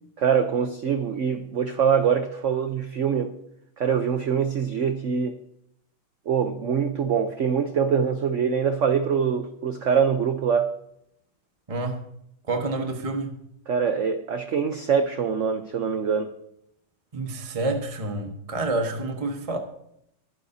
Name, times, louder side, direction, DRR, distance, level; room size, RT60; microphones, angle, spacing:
voice 1, 0.2-3.3 3.8-5.4 6.3-10.7 13.7-16.3, right 7 dB, 60° right, 8 dB, 0.8 m, -24 dB
voice 2, 11.7-12.0 12.5-13.4 17.1-19.6, right 2 dB, 20° right, 3 dB, 1.2 m, -28 dB
22.5 x 11.5 x 2.8 m, 0.74 s
omnidirectional pair, 2.2 m